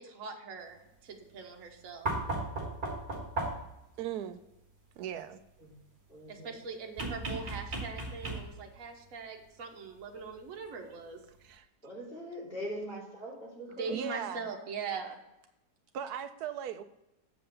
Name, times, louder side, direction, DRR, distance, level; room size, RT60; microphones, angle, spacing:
voice 1, 0.0-2.1 6.3-11.2 13.8-15.2, right 5 dB, 55° right, 2 dB, 1.5 m, -41 dB
sound 1, 2.1-3.8 7.0-8.7 10.3-10.4, right 2 dB, 30° right, 1.6 m, -35 dB
voice 2, 4.0-4.4 5.0-5.4 11.4-11.7 13.9-14.4 15.9-16.8, right 9 dB, 75° right, 11 dB, 1.1 m, -37 dB
voice 3, 6.1-6.5 11.8-14.0, equal, 30° left, -5 dB, 3.1 m, -42 dB
7.7 x 5.4 x 6.9 m, 0.87 s
omnidirectional pair, 1.8 m